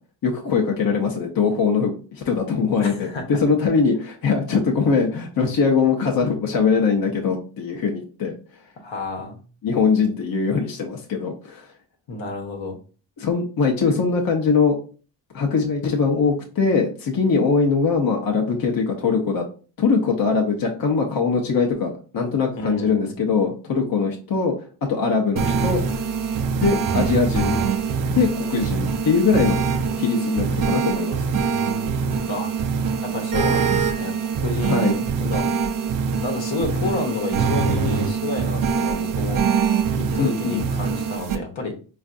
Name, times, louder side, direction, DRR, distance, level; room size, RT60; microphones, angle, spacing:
voice 1, 0.2-8.3 9.6-11.7 13.2-14.8 15.3-19.4 19.8-24.5 24.9-25.8 26.6-27.6 28.1-29.7 29.9-31.2 34.7-34.9 40.2-40.7, left 5 dB, 50° left, 1 dB, 0.7 m, -21 dB
voice 2, 2.8-3.3 8.8-9.4 12.1-12.8 22.5-23.2 26.6-27.2 32.3-32.5 33.0-35.5 36.2-39.7 40.0-41.7, left 2 dB, 75° left, 1 dB, 1.0 m, -30 dB
sound 1, 25.4-41.4, right 6 dB, 45° right, 0.5 m, -23 dB
4.3 x 2.5 x 2.5 m, 0.38 s
cardioid pair, 80°, 46 cm